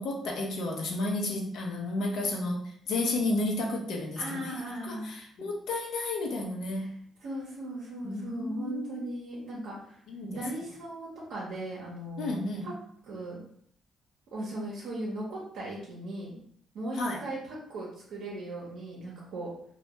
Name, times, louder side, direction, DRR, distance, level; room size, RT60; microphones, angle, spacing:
voice 1, 0.0-6.9 8.0-9.1 10.1-10.4 12.2-12.8 16.9-17.2, left 2 dB, 75° left, 0 dB, 0.6 m, -32 dB
voice 2, 4.2-5.1 6.8-6.9 7.2-10.0 10.3-12.7 13.1-13.4 14.3-16.4 16.7-19.5, right 1 dB, 75° right, -5 dB, 0.6 m, -38 dB
2.2 x 2.1 x 2.8 m, 0.63 s
cardioid pair, 90°, 0 cm